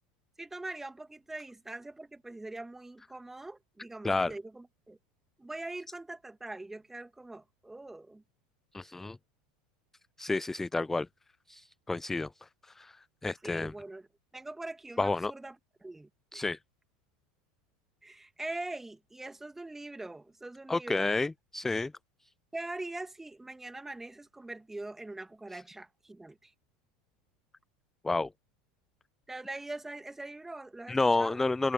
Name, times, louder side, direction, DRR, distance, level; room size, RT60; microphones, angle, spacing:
voice 1, 0.4-5.0 5.4-8.2 13.4-14.1 14.3-15.6 15.8-16.5 18.0-21.1 22.5-26.5 29.3-31.4, right 2 dB, 10° right, 2.3 m, -42 dB
voice 2, 8.7-9.2 10.2-11.1 11.5-13.0 13.2-13.7 15.0-15.3 16.3-16.6 20.7-21.9 28.0-28.3 30.9-31.7, left 3 dB, 10° left, 0.3 m, -30 dB
hypercardioid pair, 95°, 3 cm